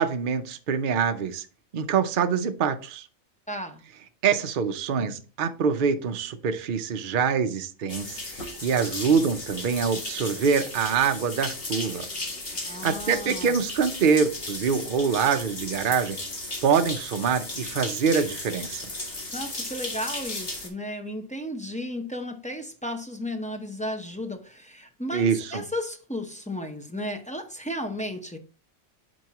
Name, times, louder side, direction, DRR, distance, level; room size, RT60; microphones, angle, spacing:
voice 1, 0.0-1.5 1.7-3.0 4.2-8.1 8.3-12.1 12.8-16.2 16.6-18.8 25.1-25.6, right 6 dB, 50° right, 0.7 m, -25 dB
voice 2, 3.5-3.8 12.6-13.6 19.3-28.4, left 1 dB, 10° left, 0.6 m, -34 dB
sound 1, 7.9-20.7, left 2 dB, 45° left, 1.9 m, -35 dB
9.2 x 4.6 x 2.9 m
omnidirectional pair, 1.4 m